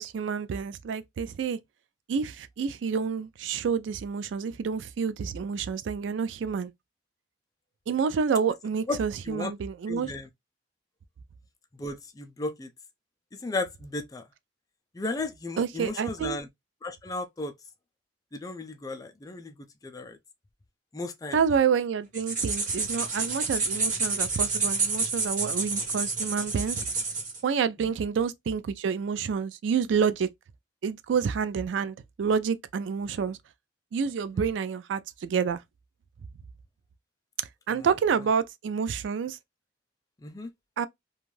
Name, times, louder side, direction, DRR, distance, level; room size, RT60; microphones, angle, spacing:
voice 1, 0.0-1.6 2.1-6.7 7.9-10.1 15.6-16.4 21.3-26.8 27.4-30.3 30.8-33.4 33.9-35.6 37.7-39.4 40.8-40.9, right 6 dB, 90° right, 0.3 m, -28 dB
voice 2, 9.9-10.3 11.8-12.7 13.3-14.2 14.9-16.5 16.8-17.5 18.3-19.5 19.8-20.2 20.9-21.4 37.7-37.9 40.2-40.5, left 2 dB, 20° left, 0.3 m, -34 dB
sound 1, 22.1-27.4, right 3 dB, 45° right, 0.9 m, -29 dB
2.5 x 2.3 x 3.0 m
head